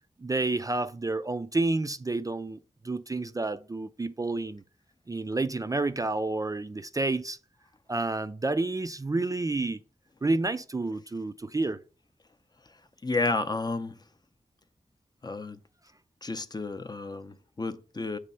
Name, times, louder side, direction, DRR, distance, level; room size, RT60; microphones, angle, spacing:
voice 1, 0.2-4.6 5.1-7.4 7.9-9.8 10.2-11.8, right 2 dB, 25° right, 0.3 m, -29 dB
voice 2, 13.0-13.9 15.2-15.6 16.2-18.2, left 3 dB, 30° left, 0.5 m, -31 dB
8.2 x 3.3 x 5.4 m
wide cardioid pair, 100°, 13 cm